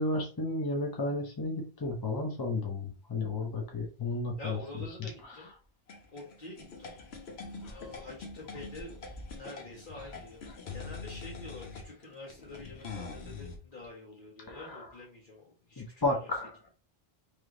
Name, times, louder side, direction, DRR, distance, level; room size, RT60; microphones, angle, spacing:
voice 1, 0.0-4.6 5.0-5.4 7.6-7.7 14.5-14.9 15.8-16.6, left 2 dB, 25° left, 1 dB, 0.7 m, -33 dB
voice 2, 4.4-5.5 6.1-6.9 7.7-9.0 9.3-15.8 16.1-16.3, left 2 dB, 55° left, -6 dB, 1.4 m, -47 dB
sound 1, 5.9-13.6, left 4 dB, 80° left, 1.1 m, -44 dB
3.3 x 3.1 x 3.8 m, 0.34 s
omnidirectional pair, 1.0 m